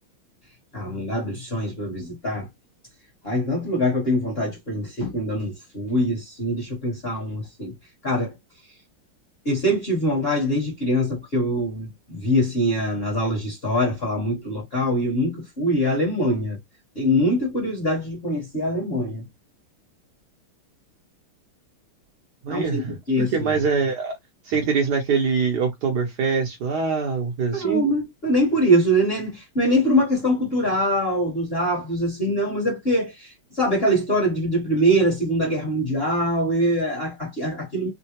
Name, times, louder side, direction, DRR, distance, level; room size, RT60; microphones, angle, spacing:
voice 1, 0.7-2.5 3.2-7.7 8.0-8.3 9.4-16.6 16.9-19.2 22.5-22.8 23.1-23.5 27.5-37.9, equal, 35° left, 1.0 m, -23 dB
voice 2, 22.4-22.9 23.2-24.1 24.4-27.8, right 5 dB, 65° right, 1.1 m, -23 dB
3.7 x 2.1 x 2.8 m
omnidirectional pair, 2.3 m